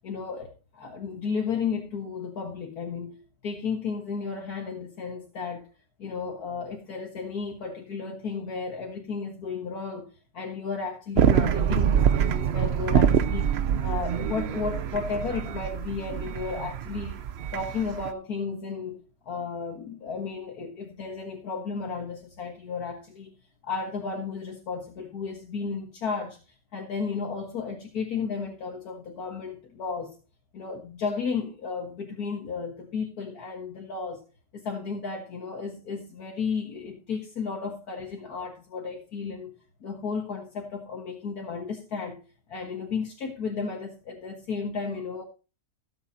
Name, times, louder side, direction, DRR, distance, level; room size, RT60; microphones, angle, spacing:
voice 1, 0.0-3.2 3.4-5.7 6.0-10.1 10.3-13.5 13.8-17.2 17.5-23.3 23.6-26.4 26.7-30.2 30.5-34.2 34.5-42.2 42.5-45.2, left 5 dB, 65° left, 2.0 m, -33 dB
sound 1, 11.1-18.1, right 8 dB, 60° right, 0.7 m, -25 dB
17.0 x 8.1 x 2.8 m
omnidirectional pair, 1.7 m